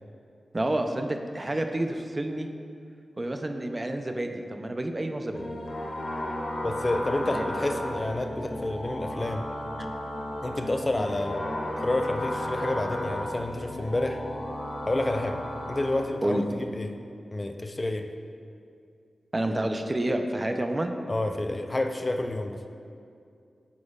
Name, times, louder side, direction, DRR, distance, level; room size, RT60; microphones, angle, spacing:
voice 1, 0.5-2.5 3.2-5.4 7.3-7.5 16.2-16.4 19.3-20.9, right 1 dB, 35° right, 5 dB, 0.5 m, -29 dB
sound 1, 5.3-16.0, left 1 dB, 60° left, 0.7 m, -34 dB
voice 2, 6.6-9.5 10.4-11.4 11.8-14.2 14.9-15.4 15.7-17.0 17.3-18.1 21.1-22.7, left 2 dB, 35° left, 6 dB, 0.4 m, -29 dB
9.5 x 4.2 x 2.3 m, 2.4 s
cardioid pair, 45°, 0 cm